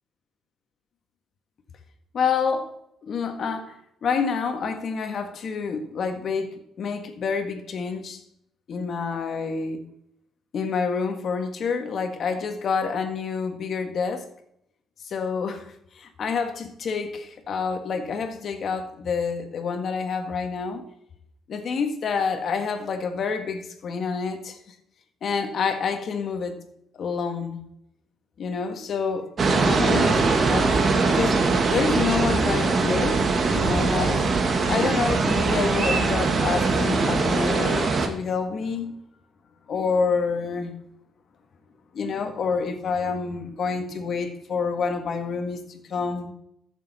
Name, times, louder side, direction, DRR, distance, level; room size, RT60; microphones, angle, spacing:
voice 1, 2.1-2.7 3.0-3.7 4.0-8.2 8.7-9.8 10.5-14.3 15.1-15.7 16.0-20.8 21.5-24.6 25.2-26.6 27.0-27.6 28.4-29.3 29.6-30.7 31.1-33.2 33.5-34.2 34.7-38.9 39.7-40.7 41.9-46.3, left 5 dB, 60° left, 1.8 m, -28 dB
sound 1, 29.4-38.1, right 4 dB, 45° right, 1.8 m, -22 dB
14.0 x 6.9 x 4.3 m
cardioid pair, 90°, 0 cm